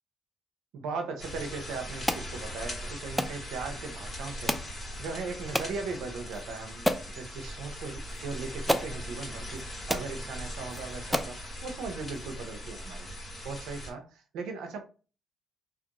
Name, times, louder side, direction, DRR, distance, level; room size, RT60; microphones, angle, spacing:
voice 1, 0.7-4.6 5.0-14.8, right 4 dB, 85° right, 0.6 m, -38 dB
sound 1, 1.2-13.9, equal, 30° left, 1.6 m, -40 dB
sound 2, 2.1-2.3 3.2-3.4 4.5-4.7 5.5-5.7 6.3-6.4 6.9-7.1 8.1-8.2 8.7-8.9 9.6-9.7 9.9-10.1 10.7-10.8 11.1-11.4, equal, ahead, 0.3 m, -29 dB
2.9 x 2.4 x 2.9 m
cardioid pair, 90°, 0 cm